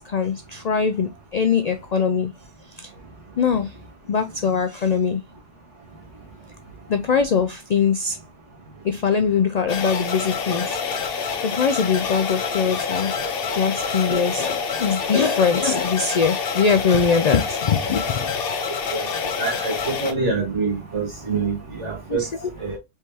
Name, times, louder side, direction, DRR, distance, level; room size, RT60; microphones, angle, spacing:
voice 1, 0.0-2.3 2.7-2.9 3.4-3.8 4.1-5.2 6.9-8.2 8.8-10.8 11.1-13.2 13.6-18.3 22.1-22.5, left 6 dB, 85° left, 0.3 m, -22 dB
sound 1, 9.7-20.1, left 5 dB, 55° left, 0.9 m, -27 dB
voice 2, 19.4-22.2 22.6-22.8, right 4 dB, 70° right, 2.2 m, -26 dB
4.6 x 3.4 x 2.7 m
omnidirectional pair, 1.3 m